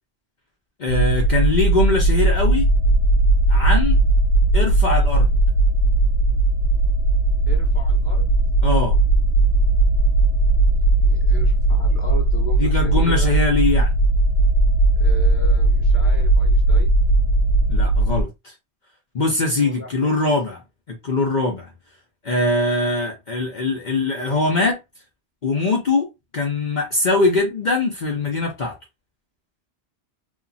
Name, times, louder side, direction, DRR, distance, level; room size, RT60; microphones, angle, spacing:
voice 1, 0.8-2.7 3.5-4.0 4.5-5.4 8.6-9.0 12.6-13.9 17.7-18.5 19.1-20.6 20.9-21.7 22.2-24.8 25.4-26.1 26.3-28.8, left 3 dB, 50° left, 0.7 m, -22 dB
sound 1, 0.9-18.2, right 2 dB, 85° left, 0.9 m, -17 dB
voice 2, 7.5-8.3 10.7-13.4 15.0-17.0 19.6-20.3, equal, 15° right, 0.8 m, -37 dB
2.9 x 2.3 x 2.6 m
omnidirectional pair, 1.1 m